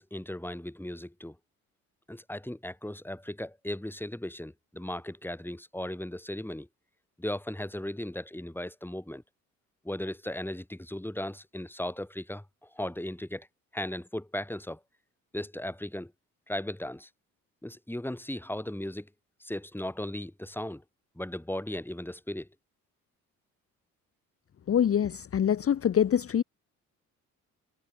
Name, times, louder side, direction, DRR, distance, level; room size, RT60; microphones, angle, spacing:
voice 1, 0.0-1.3 2.1-6.7 7.2-9.2 9.8-13.5 13.7-14.8 15.3-16.1 16.5-17.1 17.6-19.1 19.4-20.8 21.2-22.5, left 1 dB, 5° left, 3.3 m, -37 dB
voice 2, 24.7-26.4, left 9 dB, 35° left, 0.8 m, -25 dB
hypercardioid pair, 50°, 42 cm